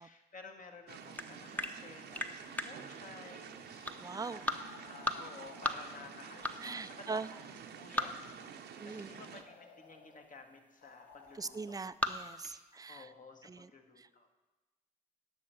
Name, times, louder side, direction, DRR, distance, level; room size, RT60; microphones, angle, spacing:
voice 1, 0.0-11.8 12.4-14.4, left 3 dB, 45° left, 4 dB, 1.6 m, -54 dB
sound 1, 0.9-13.0, left 1 dB, 10° left, 0.9 m, -39 dB
sound 2, 0.9-9.4, right 7 dB, 70° right, 0.8 m, -50 dB
sound 3, 3.8-7.7 9.1-10.3 10.8-11.8, left 4 dB, 70° left, 1.2 m, -58 dB
voice 2, 4.0-4.4 6.6-7.3 8.8-9.2 11.4-13.1 13.4-13.7 14.0-14.1, right 4 dB, 20° right, 15 dB, 0.4 m, -41 dB
10.5 x 6.3 x 5.8 m, 1.2 s
supercardioid pair, 50°, 18 cm